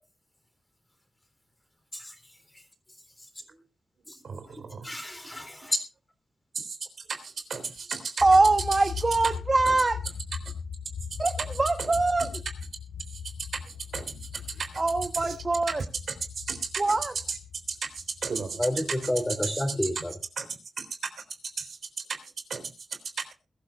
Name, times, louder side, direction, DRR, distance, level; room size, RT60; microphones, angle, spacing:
voice 1, 4.2-4.9 6.6-6.8 7.1-8.1 9.7-9.8 11.8-11.9 13.5-13.6 13.9-14.7 16.4-16.7 17.8-17.9 18.2-19.1 19.4-20.0 20.4-20.5 20.8-20.9 21.6-21.8 22.5-22.7, right 5 dB, 70° right, 3.5 m, -34 dB
voice 2, 4.8-5.8 18.6-20.1, left 1 dB, 15° left, 3.7 m, -29 dB
sound 1, 8.2-19.5, left 6 dB, 90° left, 1.7 m, -39 dB
voice 3, 8.2-10.0 11.2-12.3 14.8-15.8 16.8-17.1, right 3 dB, 30° right, 1.1 m, -23 dB
21.5 x 13.5 x 2.5 m
wide cardioid pair, 95°, 0 cm